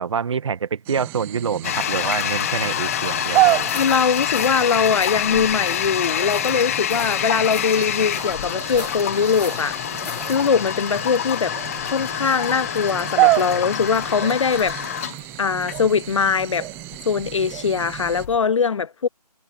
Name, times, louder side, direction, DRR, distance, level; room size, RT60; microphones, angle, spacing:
voice 1, 0.0-3.7, right 6 dB, 45° right, 1.8 m, -26 dB
sound 1, 0.9-18.3, right 21 dB, 10° right, 1.0 m, -29 dB
Toilet flush, 1.6-18.4, left 11 dB, 20° left, 0.8 m, -27 dB
sound 2, 3.6-10.5, left 4 dB, 75° left, 1.9 m, -39 dB
voice 2, 3.7-9.8 10.3-11.6 11.8-14.8 15.4-16.7 17.1-19.1, left 6 dB, 50° left, 0.5 m, -21 dB
figure-of-eight pair, 155°, 21 cm